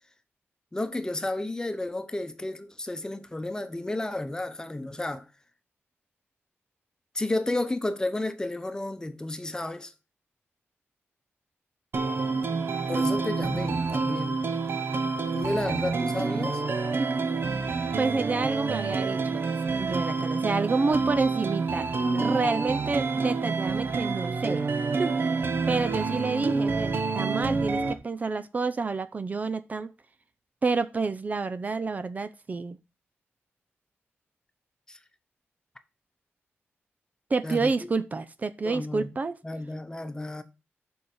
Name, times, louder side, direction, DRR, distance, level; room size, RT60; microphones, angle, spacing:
voice 1, 0.7-5.3 7.1-9.9 12.9-14.4 15.3-16.6 34.9-35.0 37.4-37.8 38.6-39.2 39.4-40.4, left 2 dB, 15° left, 1.0 m, -32 dB
sound 1, 11.9-27.9, right 4 dB, 55° right, 1.3 m, -28 dB
voice 2, 18.0-19.5 19.8-24.6 24.9-25.2 25.7-29.9 30.6-32.8 37.3-39.4, right 4 dB, 35° right, 0.7 m, -29 dB
7.4 x 5.6 x 6.7 m
wide cardioid pair, 120°, 5 cm